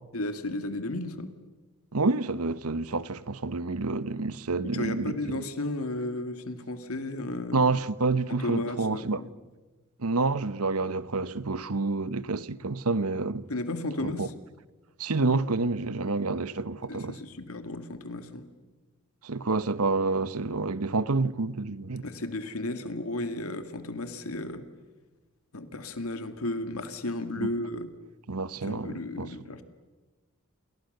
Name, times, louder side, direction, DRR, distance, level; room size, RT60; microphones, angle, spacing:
voice 1, 0.1-1.3 4.7-7.7 8.3-9.3 13.5-14.3 16.9-18.5 22.0-24.6 25.5-27.9 28.6-29.6, left 2 dB, 75° left, 2.3 m, -34 dB
voice 2, 1.9-5.4 7.5-9.2 10.0-13.4 14.0-14.3 15.0-17.2 19.2-22.0 27.4-27.5 28.3-29.3, right 3 dB, 90° right, 1.0 m, -28 dB
28.5 x 28.0 x 6.8 m
head